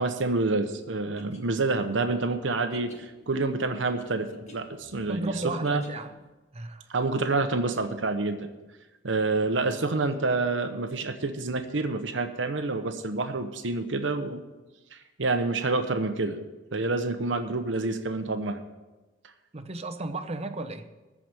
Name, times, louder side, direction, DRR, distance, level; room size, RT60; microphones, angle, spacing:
voice 1, 0.0-5.3 5.6-5.8 6.9-8.5 9.0-14.4 14.9-16.4 16.7-18.6, right 3 dB, 85° right, 7 dB, 0.9 m, -28 dB
sound 1, 1.2-6.3, equal, 40° left, 1.8 m, -51 dB
voice 2, 5.1-6.1 6.5-6.9 9.9-10.1 19.5-20.9, right 2 dB, 35° right, 8 dB, 0.9 m, -34 dB
14.0 x 5.0 x 9.0 m, 1.1 s
head